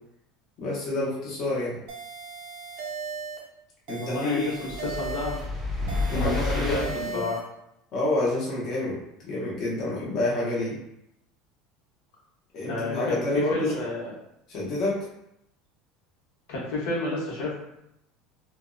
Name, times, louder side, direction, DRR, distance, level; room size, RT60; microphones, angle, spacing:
voice 1, 0.6-1.8 3.9-4.5 6.1-7.2 7.9-9.0 9.2-10.8 12.5-13.8 14.5-14.9, left 2 dB, 35° left, -6 dB, 0.6 m, -28 dB
sound 1, 1.9-3.5 3.9-5.5 5.9-7.5, right 5 dB, 65° right, 0.5 m, -37 dB
voice 2, 4.0-5.4 6.1-7.4 12.7-14.1 16.5-17.5, left 2 dB, 80° left, -4 dB, 0.8 m, -31 dB
sound 2, 4.6-7.2, left 3 dB, 5° right, 0.4 m, -30 dB
2.6 x 2.0 x 2.4 m, 0.82 s
cardioid pair, 170°, 0 cm